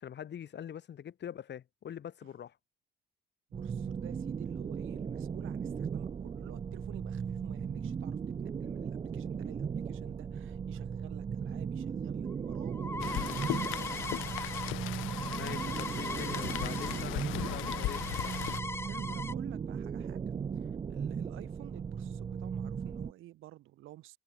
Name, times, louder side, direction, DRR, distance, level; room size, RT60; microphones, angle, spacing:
voice 1, 0.0-2.6 15.3-18.0, left 9 dB, 60° left, 3.8 m, -43 dB
sound 1, 3.5-23.1, right 6 dB, 30° right, 0.4 m, -37 dB
voice 2, 3.5-13.7 18.9-20.3 20.5-24.2, right 16 dB, 90° right, 7.0 m, -52 dB
sound 2, 12.3-17.0 17.3-19.3, left 2 dB, 10° left, 1.4 m, -40 dB
Rain, 13.0-18.6, left 19 dB, 85° left, 0.4 m, -38 dB
cardioid pair, 90°, 20 cm